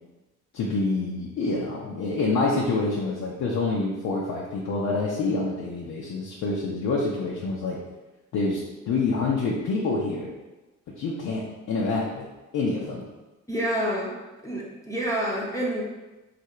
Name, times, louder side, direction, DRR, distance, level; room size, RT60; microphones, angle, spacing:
voice 1, 0.5-7.8 8.3-8.6 8.9-10.3 11.0-12.2 12.5-13.0, left 3 dB, 65° left, -4 dB, 0.7 m, -27 dB
voice 2, 13.5-14.1 14.4-15.8, right 1 dB, 10° left, -5 dB, 0.7 m, -28 dB
2.8 x 2.5 x 4.2 m, 1.1 s
cardioid pair, 90°, 30 cm